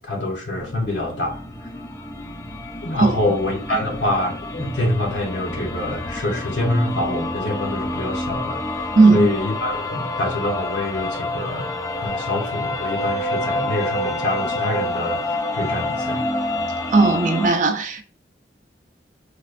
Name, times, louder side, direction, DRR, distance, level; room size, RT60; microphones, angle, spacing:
voice 1, 0.0-1.7 2.8-11.7 12.0-16.3, left 1 dB, 75° left, 0.8 m, -26 dB
sound 1, 0.6-17.5, left 1 dB, 15° left, 0.4 m, -28 dB
voice 2, 9.0-9.3 16.9-18.0, right 3 dB, 45° right, 0.5 m, -16 dB
4.8 x 2.2 x 2.4 m
head